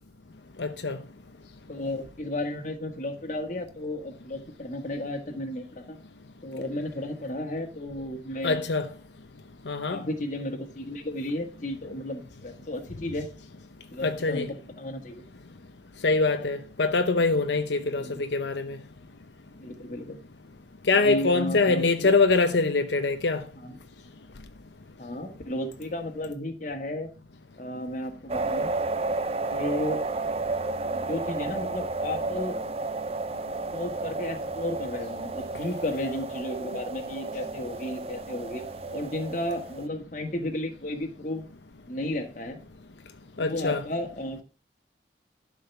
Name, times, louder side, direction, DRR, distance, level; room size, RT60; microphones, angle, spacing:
voice 1, 0.6-1.0 8.4-8.9 9.7-10.0 14.0-14.5 16.0-18.8 20.9-23.4 43.4-43.8, left 3 dB, 80° left, 0.8 m, -24 dB
voice 2, 1.7-6.0 6.4-8.6 9.9-13.3 13.9-14.5 14.8-15.2 17.8-18.2 19.6-20.2 20.9-22.1 23.6-23.7 25.0-27.1 27.6-28.8 29.5-30.1 30.9-32.6 33.7-38.6 38.9-41.5 41.9-42.6 43.4-44.4, left 1 dB, 45° left, 1.6 m, -33 dB
sound 1, 28.3-39.9, right 3 dB, 35° right, 0.6 m, -32 dB
11.5 x 5.0 x 7.0 m
head